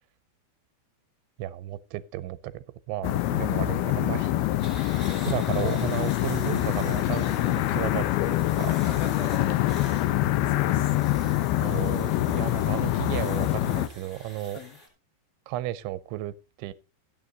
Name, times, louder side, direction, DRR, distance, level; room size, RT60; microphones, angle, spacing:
voice 1, 1.4-4.3 4.8-8.7 11.6-14.6 15.5-16.7, right 14 dB, 90° right, 3.1 m, -34 dB
sound 1, 3.0-13.9, left 14 dB, 80° left, 2.2 m, -25 dB
sound 2, 4.6-14.9, left 1 dB, 15° left, 3.1 m, -47 dB
voice 2, 8.7-11.4 14.5-14.8, left 5 dB, 60° left, 3.3 m, -40 dB
13.0 x 9.2 x 3.9 m
omnidirectional pair, 5.2 m